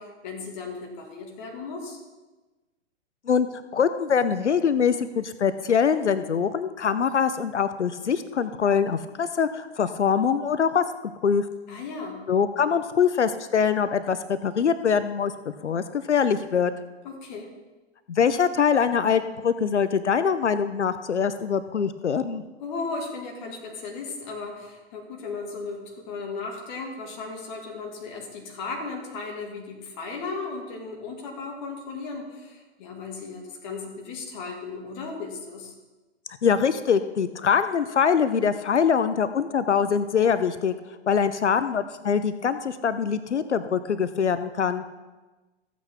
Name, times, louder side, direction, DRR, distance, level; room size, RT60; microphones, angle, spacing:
voice 1, 0.0-2.0 11.7-12.2 17.0-17.5 22.6-35.7, left 4 dB, 40° left, 1 dB, 2.1 m, -36 dB
voice 2, 3.7-10.8 11.2-11.5 12.3-15.3 15.6-16.7 18.1-22.4 36.4-40.7 41.1-44.8, left 7 dB, 75° left, 12 dB, 0.7 m, -23 dB
15.0 x 8.3 x 3.6 m, 1.2 s
figure-of-eight pair, 110°, 35 cm